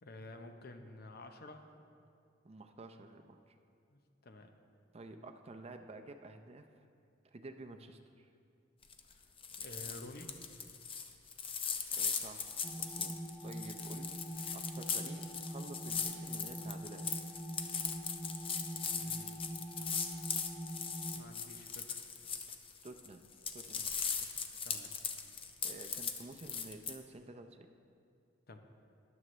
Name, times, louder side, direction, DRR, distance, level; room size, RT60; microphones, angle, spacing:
voice 1, 0.0-1.7 3.9-4.5 9.1-9.2 9.6-10.3 18.9-19.4 21.1-22.1 24.2-24.3 24.6-24.9 28.5-28.6, left 2 dB, 55° left, 6 dB, 0.8 m, -51 dB
voice 2, 2.4-3.6 4.9-6.7 7.2-8.3 12.0-14.2 14.5-17.1 22.8-23.2 23.5-23.9 25.6-27.7, right 2 dB, 35° right, 6 dB, 0.6 m, -51 dB
sound 1, 8.8-9.1 9.4-23.1 23.3-26.9, left 6 dB, 30° left, 0.6 m, -39 dB
sound 2, 12.6-21.2, right 1 dB, ahead, 1.0 m, -44 dB
14.0 x 11.0 x 3.2 m, 2.4 s
head